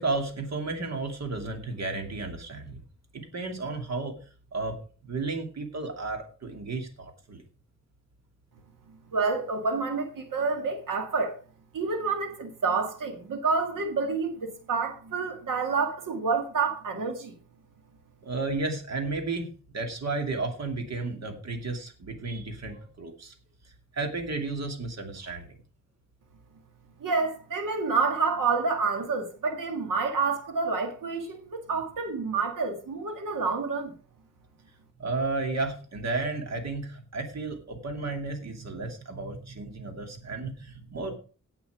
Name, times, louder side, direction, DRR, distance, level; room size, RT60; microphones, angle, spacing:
voice 1, 0.0-2.8 3.1-4.2 4.5-7.4 18.2-23.3 23.9-25.6 35.0-41.2, right 3 dB, 55° right, 2.6 m, -33 dB
voice 2, 9.1-11.4 11.7-17.3 27.0-33.9, right 4 dB, 85° right, 2.0 m, -28 dB
17.5 x 5.9 x 4.9 m
wide cardioid pair, 160°, 31 cm